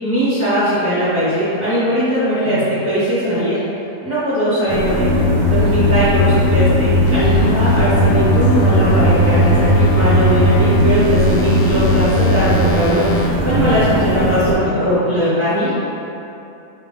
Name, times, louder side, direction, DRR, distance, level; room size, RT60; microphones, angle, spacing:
voice 1, 0.0-2.6 2.8-3.6 4.0-5.1 5.5-13.0 13.4-15.7, equal, 10° left, -15 dB, 1.1 m, -19 dB
voice 2, 2.4-2.8 5.6-6.4 13.7-15.3, equal, 60° right, -4 dB, 0.8 m, -30 dB
sound 1, 4.7-14.5, right 1 dB, 75° right, 1.2 m, -20 dB
sound 2, 5.0-12.5, left 3 dB, 70° left, 0.6 m, -18 dB
sound 3, 7.1-13.3, right 7 dB, 85° left, 1.1 m, -22 dB
5.4 x 2.7 x 3.3 m, 2.9 s
omnidirectional pair, 1.6 m